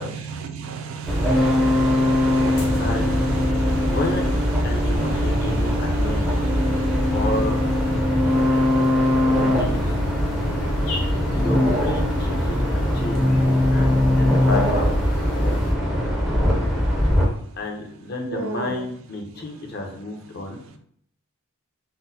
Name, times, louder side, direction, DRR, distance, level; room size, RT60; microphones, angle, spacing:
voice 1, 0.4-4.0 4.7-7.2 7.9-11.5 18.3-18.9, right 5 dB, 65° right, 6 dB, 0.4 m, -35 dB
sound 1, 1.0-15.7, equal, 85° left, 0.7 m, -32 dB
sound 2, 1.1-17.2, left 1 dB, ahead, 0.4 m, -21 dB
voice 2, 2.8-3.2 3.9-4.2 4.6-6.4 7.1-7.6 9.2-9.9 11.3-13.2 13.6-15.0 17.6-20.6, left 2 dB, 45° left, 2 dB, 0.6 m, -31 dB
3.7 x 2.0 x 2.7 m, 0.63 s
head